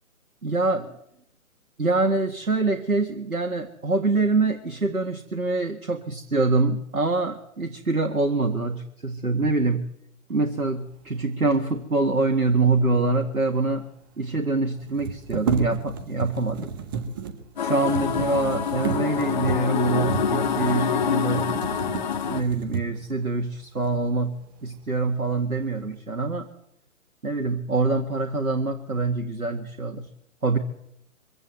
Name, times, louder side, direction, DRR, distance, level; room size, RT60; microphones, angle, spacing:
voice 1, 0.4-0.9 1.8-9.9 10.3-13.9 14.2-16.8 17.6-26.5 27.2-30.1 30.4-30.6, right 3 dB, 85° right, 4 dB, 1.8 m, -25 dB
sound 1, 13.3-13.4 13.6-13.7 14.8-23.2 23.8-24.0 24.4-25.0 25.4-25.9, right 6 dB, 15° right, 0.9 m, -33 dB
sound 2, 17.6-22.4, left 8 dB, 30° left, 1.1 m, -26 dB
23.5 x 15.5 x 7.8 m, 0.78 s
figure-of-eight pair, 140°, 43 cm